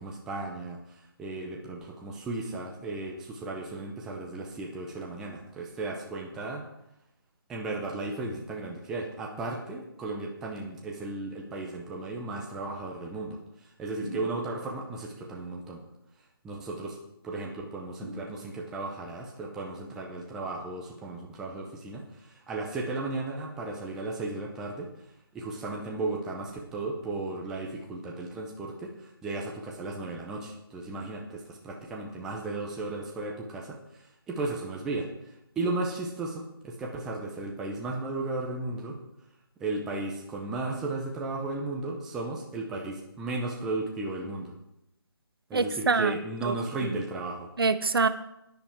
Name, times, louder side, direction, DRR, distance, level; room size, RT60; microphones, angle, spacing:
voice 1, 0.0-6.6 7.5-15.8 16.4-17.0 17.2-24.9 25.3-35.1 35.6-39.0 39.6-44.5 45.5-47.5, right 2 dB, 5° right, -1 dB, 0.5 m, -35 dB
sound 1, 14.0-14.9 18.0-18.9, equal, 75° left, 4.4 m, -42 dB
voice 2, 45.5-46.2 46.4-46.5 46.8-47.0 47.6-48.1, right 4 dB, 70° right, 12 dB, 1.0 m, -25 dB
10.0 x 9.5 x 4.4 m, 0.85 s
figure-of-eight pair, 165°, 13 cm